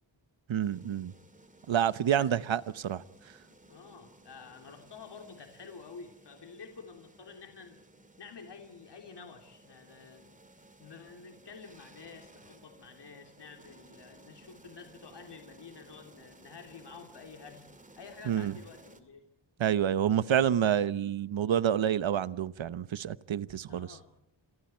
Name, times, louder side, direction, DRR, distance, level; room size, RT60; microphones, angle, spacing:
voice 1, 0.5-1.1 1.7-3.0 18.3-18.5 19.6-24.0, right 9 dB, 80° right, 16 dB, 1.0 m, -28 dB
sound 1, 0.6-19.0, right 2 dB, 15° right, 2.3 m, -57 dB
voice 2, 3.7-7.8 8.2-10.4 10.8-17.6 18.0-19.2 23.7-24.1, left 5 dB, 60° left, 4 dB, 3.4 m, -50 dB
29.5 x 27.0 x 4.5 m, 0.75 s
wide cardioid pair, 150°, 46 cm